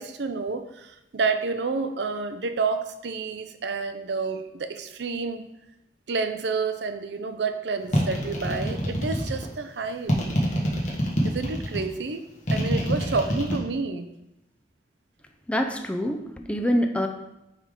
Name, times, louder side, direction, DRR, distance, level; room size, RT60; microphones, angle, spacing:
voice 1, 0.0-5.5 6.1-10.1 11.2-14.1, right 4 dB, 75° right, 9 dB, 0.5 m, -29 dB
sound 1, 7.9-9.5 10.1-11.8 12.5-13.6, equal, 40° left, 1.3 m, -25 dB
voice 2, 15.5-17.1, equal, 5° left, 5 dB, 0.4 m, -25 dB
9.9 x 3.6 x 3.7 m, 0.90 s
head